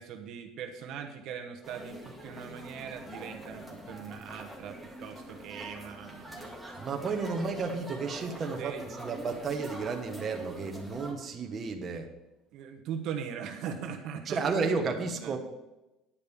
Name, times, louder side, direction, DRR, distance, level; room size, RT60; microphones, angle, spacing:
voice 1, 0.0-6.6 8.3-8.8 12.5-15.4, right 7 dB, 55° right, 4 dB, 1.0 m, -41 dB
sound 1, 1.6-11.1, right 1 dB, ahead, 1.8 m, -45 dB
voice 2, 6.8-12.1 14.3-15.4, right 4 dB, 30° right, 3 dB, 1.1 m, -32 dB
9.9 x 5.2 x 7.0 m, 0.99 s
cardioid pair, 140°, 0 cm